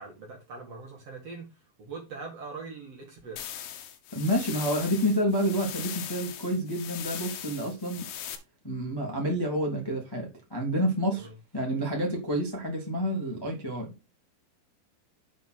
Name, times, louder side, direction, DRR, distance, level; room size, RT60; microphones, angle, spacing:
voice 1, 0.0-1.5 1.8-3.6 11.1-11.3, right 4 dB, 45° right, 2.3 m, -42 dB
sound 1, 3.4-8.4, left 10 dB, 70° left, 3.2 m, -39 dB
voice 2, 4.1-8.1 8.6-11.3 11.5-13.9, equal, 30° left, 0.4 m, -29 dB
8.1 x 4.3 x 6.1 m
omnidirectional pair, 5.7 m